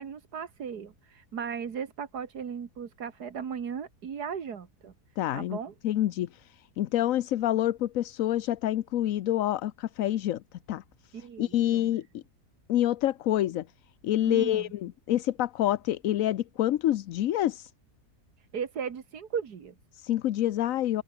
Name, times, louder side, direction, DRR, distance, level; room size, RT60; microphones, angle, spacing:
voice 1, 0.0-4.9 5.3-5.7 11.1-11.9 14.3-14.7 18.4-19.7, right 7 dB, 80° right, 2.2 m, -37 dB
voice 2, 5.2-5.6 5.8-10.4 10.7-10.8 11.2-12.2 12.7-13.7 14.0-17.7 19.9-21.0, left 12 dB, 65° left, 1.0 m, -27 dB
open air
omnidirectional pair, 1.7 m